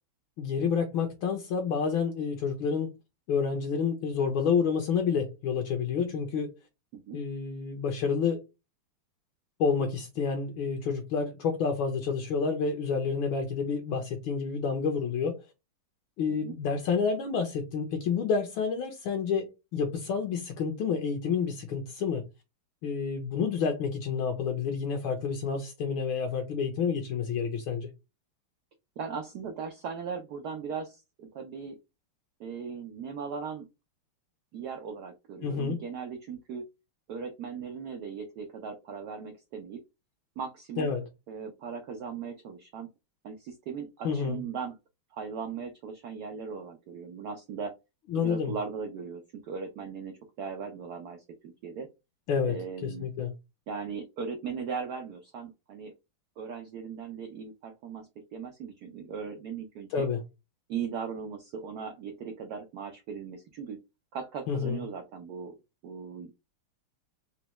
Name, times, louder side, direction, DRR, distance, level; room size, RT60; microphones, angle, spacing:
voice 1, 0.4-2.9 3.3-6.5 7.1-8.4 9.6-15.4 16.2-22.2 22.8-27.9 35.4-35.8 40.8-41.0 44.0-44.4 48.1-48.5 52.3-52.6 52.8-53.3 59.9-60.2 64.5-64.8, left 6 dB, 70° left, 1.4 m, -29 dB
voice 2, 29.0-31.8 32.4-33.7 34.5-36.6 37.1-39.8 40.4-40.9 41.3-42.9 43.2-44.7 45.1-47.7 48.1-51.9 52.5-53.1 53.7-55.9 56.4-60.0 60.7-63.8 64.1-65.5 65.8-66.3, right 6 dB, 85° right, 0.8 m, -38 dB
4.2 x 2.2 x 2.9 m
omnidirectional pair, 2.4 m